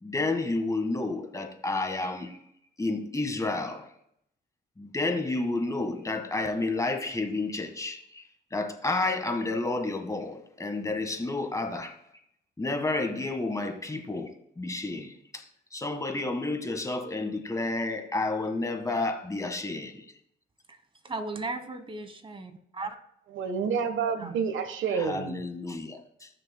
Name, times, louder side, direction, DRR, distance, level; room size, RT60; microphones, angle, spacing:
voice 1, 0.0-2.4 2.8-3.9 4.8-11.9 12.6-14.3 14.6-15.4 15.7-20.0 24.9-26.3, left 2 dB, 15° left, 1.5 m, -30 dB
voice 2, 21.0-23.0 24.2-24.3, right 3 dB, 25° right, 1.2 m, -36 dB
voice 3, 23.3-25.4, right 6 dB, 75° right, 1.2 m, -29 dB
19.5 x 6.6 x 2.2 m
cardioid pair, 90°, 20 cm